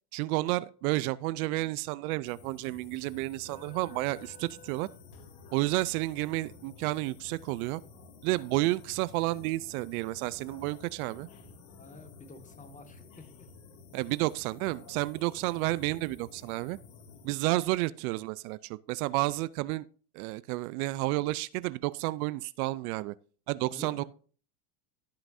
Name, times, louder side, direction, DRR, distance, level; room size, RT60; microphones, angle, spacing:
voice 1, 0.1-4.9 5.5-7.8 8.2-11.3 13.9-16.8 17.2-19.9 20.1-23.1 23.5-24.0, right 19 dB, 70° right, 0.6 m, -31 dB
sound 1, 2.2-17.3, left 4 dB, 60° left, 2.4 m, -52 dB
voice 2, 11.8-13.5 23.6-24.1, left 2 dB, 15° left, 1.7 m, -49 dB
17.0 x 5.8 x 2.7 m
supercardioid pair, 125°, 46 cm